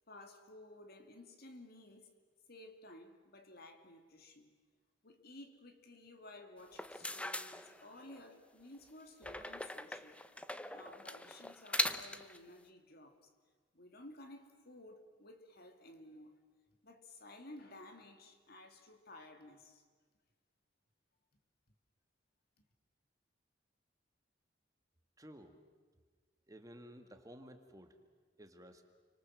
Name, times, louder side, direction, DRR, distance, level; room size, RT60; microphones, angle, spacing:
voice 1, 0.1-2.1 2.5-4.5 5.0-10.2 10.7-13.2 13.7-16.4 16.8-19.8 22.6-22.7, left 1 dB, 55° left, 2.8 m, -55 dB
sound 1, 6.6-8.2 9.2-12.4, left 1 dB, 5° left, 0.8 m, -40 dB
voice 2, 25.2-25.5 26.5-28.0 28.4-28.8, equal, 20° right, 2.1 m, -54 dB
29.5 x 25.0 x 7.7 m
head